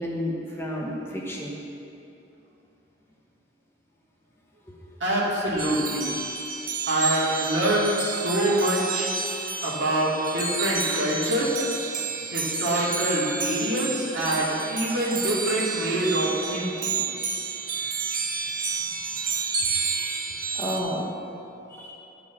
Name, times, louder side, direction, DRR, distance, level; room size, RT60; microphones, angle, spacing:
voice 1, 0.0-1.5 19.9-20.1 20.5-21.1 21.7-21.9, equal, 10° left, -4 dB, 1.0 m, -31 dB
voice 2, 5.0-6.1 6.9-9.1 9.6-11.6 12.3-17.0, right 1 dB, 60° right, -6 dB, 2.4 m, -25 dB
sound 1, 5.6-20.8, right 5 dB, 45° right, 0.8 m, -30 dB
11.5 x 5.0 x 7.2 m, 2.8 s
head